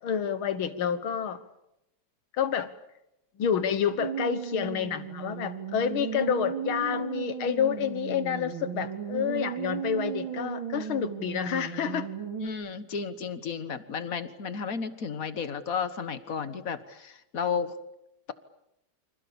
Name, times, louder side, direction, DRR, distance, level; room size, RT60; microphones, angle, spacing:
voice 1, 0.0-1.4 2.4-2.7 3.4-12.1, left 8 dB, 90° left, 13 dB, 2.2 m, -29 dB
sound 1, 4.0-12.5, right 7 dB, 75° right, 3.6 m, -35 dB
voice 2, 12.4-17.7, left 6 dB, 45° left, 12 dB, 1.7 m, -33 dB
28.5 x 26.0 x 7.1 m, 0.83 s
omnidirectional pair, 2.2 m